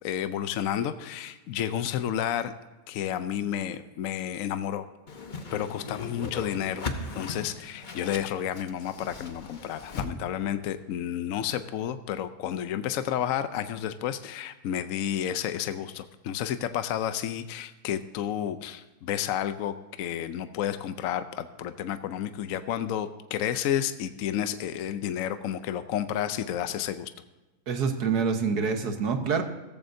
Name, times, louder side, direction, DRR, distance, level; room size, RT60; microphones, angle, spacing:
voice 1, 0.0-2.5 2.9-4.8 5.5-6.9 7.2-27.1, left 10 dB, 65° left, 11 dB, 0.9 m, -31 dB
Whoosh swoosh swish, 5.1-10.1, left 3 dB, 40° left, 0.8 m, -38 dB
voice 2, 27.7-29.4, right 5 dB, 70° right, 6 dB, 1.7 m, -26 dB
16.0 x 14.0 x 2.7 m, 1.1 s
omnidirectional pair, 1.8 m